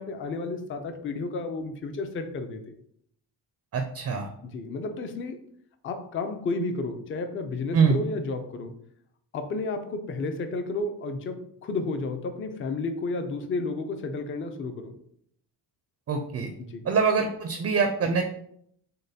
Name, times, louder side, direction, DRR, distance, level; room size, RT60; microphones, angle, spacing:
voice 1, 0.0-2.7 4.4-5.4 5.8-8.7 9.3-15.0 16.6-16.9, left 3 dB, 30° left, 7 dB, 0.4 m, -32 dB
voice 2, 3.7-4.3 7.7-8.0 16.1-16.5 16.9-18.2, right 5 dB, 35° right, 5 dB, 0.4 m, -24 dB
6.4 x 2.2 x 2.7 m, 0.68 s
cardioid pair, 135°, 44 cm